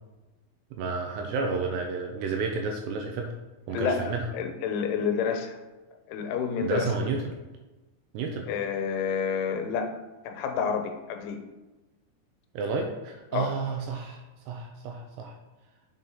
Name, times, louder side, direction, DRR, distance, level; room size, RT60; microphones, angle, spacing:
voice 1, 0.7-3.3 3.7-4.3 6.6-7.4 8.1-8.5 12.5-15.3, right 4 dB, 80° right, 2 dB, 2.5 m, -31 dB
voice 2, 3.7-5.6 6.1-6.9 8.5-9.9 10.2-11.4 13.3-13.5, left 6 dB, 90° left, 5 dB, 3.2 m, -29 dB
7.7 x 4.0 x 5.4 m, 1.1 s
omnidirectional pair, 5.5 m